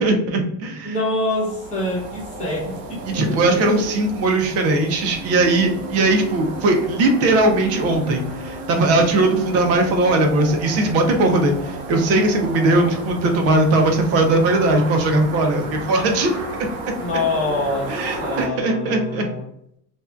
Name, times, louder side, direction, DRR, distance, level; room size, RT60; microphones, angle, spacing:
voice 1, 0.0-1.0 3.1-16.3 17.9-19.2, right 2 dB, 35° right, 3 dB, 0.4 m, -19 dB
voice 2, 0.8-3.8 17.0-17.9 18.2-19.5, left 2 dB, 15° left, -5 dB, 1.0 m, -25 dB
sound 1, 1.2-18.5, right 1 dB, 70° right, 1.2 m, -33 dB
2.5 x 2.2 x 2.2 m, 0.73 s
cardioid pair, 145°, 47 cm